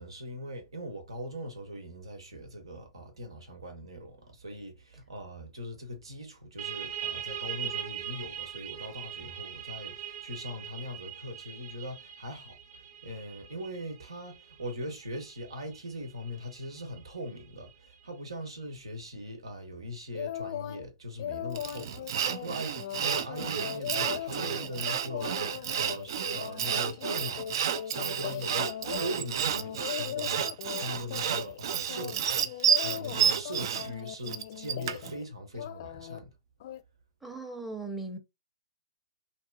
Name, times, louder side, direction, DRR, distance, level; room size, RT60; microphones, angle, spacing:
voice 1, 0.0-27.5 27.8-32.5 32.8-36.3, equal, 85° right, 1.2 m, -41 dB
sound 1, 6.6-17.9, right 10 dB, 40° right, 0.9 m, -41 dB
sound 2, 20.1-20.8 21.2-29.2 29.5-30.8 31.1-31.6 31.9-35.2 35.5-36.2 36.6-36.8, left 11 dB, 55° left, 0.5 m, -39 dB
Sawing, 21.6-35.1, right 8 dB, 60° right, 0.4 m, -30 dB
voice 2, 37.2-38.2, right 3 dB, 5° right, 0.7 m, -38 dB
2.9 x 2.5 x 2.4 m
hypercardioid pair, 120°, 3 cm